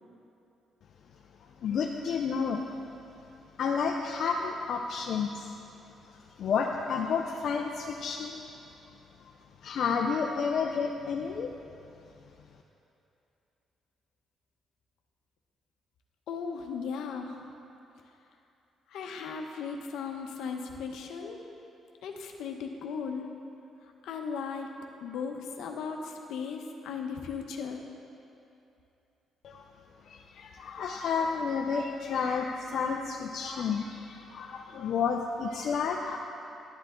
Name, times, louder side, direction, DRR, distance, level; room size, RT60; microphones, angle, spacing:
voice 1, 1.6-2.6 3.6-5.5 6.4-8.4 9.6-11.5 29.4-29.6 30.1-36.2, left 5 dB, 65° left, 1 dB, 0.5 m, -31 dB
voice 2, 16.3-17.4 18.9-21.4 22.0-23.3 24.0-24.7 25.0-27.8, left 5 dB, 80° left, 3 dB, 0.8 m, -37 dB
11.5 x 8.2 x 3.7 m, 2.8 s
cardioid pair, 90°, 0 cm